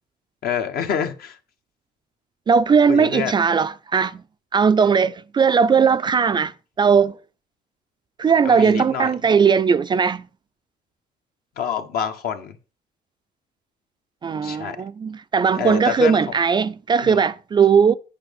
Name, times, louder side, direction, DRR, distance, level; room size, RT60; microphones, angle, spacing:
voice 1, 0.4-1.4 2.9-3.3 8.4-9.1 11.6-12.5 14.4-14.8 15.5-16.2 17.0-17.2, left 8 dB, 65° left, 1.2 m, -27 dB
voice 2, 2.5-4.2 4.5-7.2 8.2-10.3 14.2-18.0, right 6 dB, 25° right, 0.3 m, -18 dB
8.7 x 5.3 x 5.3 m
cardioid pair, 110°, 17 cm